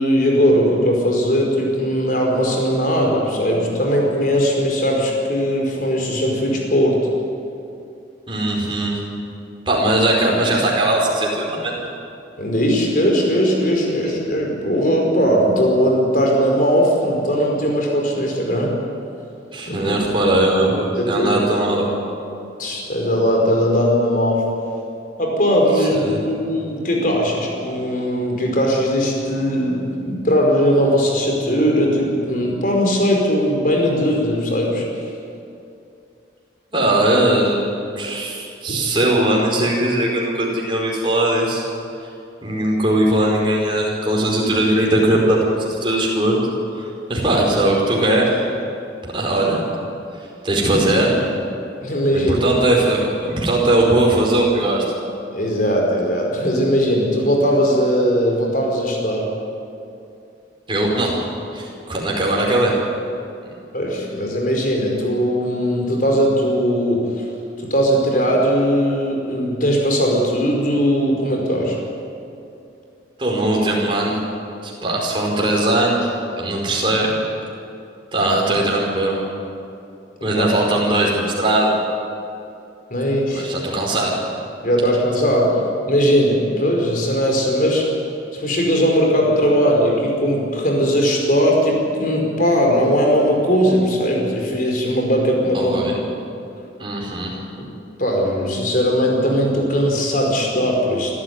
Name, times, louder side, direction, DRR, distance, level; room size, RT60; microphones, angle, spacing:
voice 1, 0.0-7.1 12.4-18.8 19.7-20.0 21.0-21.3 22.6-24.4 25.2-34.8 38.7-38.8 51.8-52.4 55.3-59.3 63.7-67.3 67.6-71.8 80.4-80.5 82.9-83.5 84.6-85.6 85.9-87.8 88.3-95.8 97.6-97.7 98.0-101.1, equal, 50° left, 0 dB, 5.0 m, -19 dB
voice 2, 8.3-9.0 9.6-11.8 19.5-21.9 25.7-26.2 36.7-37.7 37.9-41.6 42.4-46.4 46.7-48.5 49.0-49.6 50.2-51.1 52.1-54.8 60.7-61.2 61.5-62.8 73.2-74.2 74.6-76.1 76.4-77.1 78.1-79.1 80.2-81.8 83.3-84.1 95.5-96.0 96.8-97.4, right 1 dB, 30° right, -2 dB, 4.9 m, -19 dB
26.0 x 13.5 x 9.7 m, 2.6 s
head